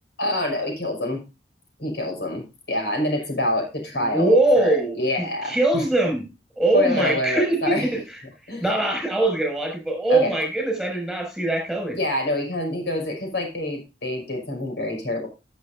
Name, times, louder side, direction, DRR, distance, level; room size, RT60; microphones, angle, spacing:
voice 1, 0.2-1.2 1.8-5.8 6.7-7.9 8.5-8.6 10.1-10.3 11.9-15.3, left 1 dB, 75° left, 2 dB, 6.1 m, -26 dB
voice 2, 4.0-5.0 5.4-6.2 6.6-8.0 8.6-12.0, right 2 dB, ahead, 3 dB, 6.2 m, -22 dB
17.5 x 8.2 x 2.6 m, 0.28 s
head